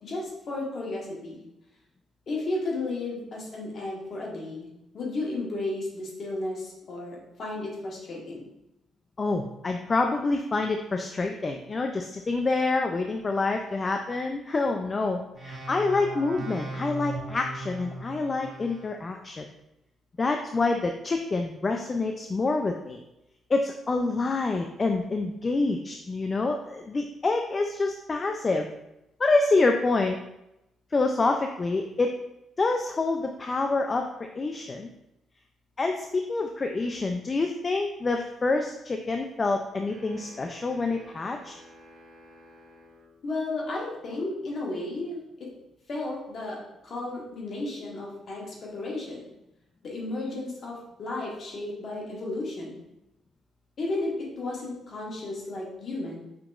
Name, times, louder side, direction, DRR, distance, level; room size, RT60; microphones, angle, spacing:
voice 1, 0.0-1.4 2.3-4.7 4.9-8.5 43.2-45.5 45.9-49.3 49.8-52.7 53.8-56.2, left 2 dB, 50° left, -3 dB, 1.4 m, -33 dB
voice 2, 9.2-19.5 20.2-23.0 23.5-28.7 29.2-30.2 30.9-32.2 32.6-34.9 35.8-41.5, left 3 dB, 30° left, 4 dB, 0.3 m, -27 dB
sound 1, 15.3-19.0, right 2 dB, 40° right, 1.2 m, -38 dB
sound 2, 39.9-43.2, equal, 70° right, 0.9 m, -51 dB
5.7 x 2.9 x 2.4 m, 0.89 s
cardioid pair, 90°, 0 cm